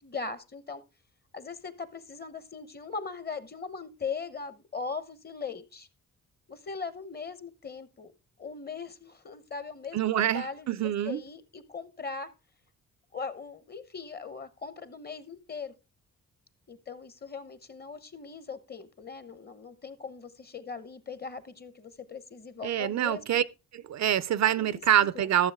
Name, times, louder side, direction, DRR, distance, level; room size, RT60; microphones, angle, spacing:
voice 1, 0.0-0.8 1.3-5.9 6.5-8.1 8.4-12.3 13.1-15.7 16.7-23.4 24.6-24.8 25.1-25.3, left 5 dB, 30° left, 0.9 m, -40 dB
voice 2, 9.9-11.2 22.6-23.4 23.7-25.5, right 11 dB, 60° right, 0.5 m, -26 dB
13.0 x 7.0 x 3.5 m
cardioid pair, 90°, 32 cm